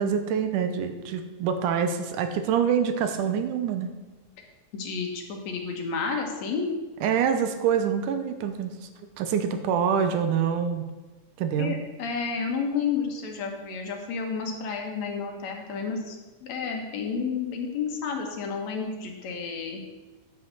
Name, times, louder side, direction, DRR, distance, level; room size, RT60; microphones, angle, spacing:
voice 1, 0.0-3.9 7.0-8.7 9.2-10.8 11.4-11.8, right 7 dB, 80° right, 7 dB, 2.2 m, -25 dB
voice 2, 4.7-6.7 11.6-16.2 16.4-19.8, left 5 dB, 65° left, 2 dB, 2.4 m, -31 dB
9.7 x 5.7 x 6.5 m, 1.2 s
omnidirectional pair, 3.6 m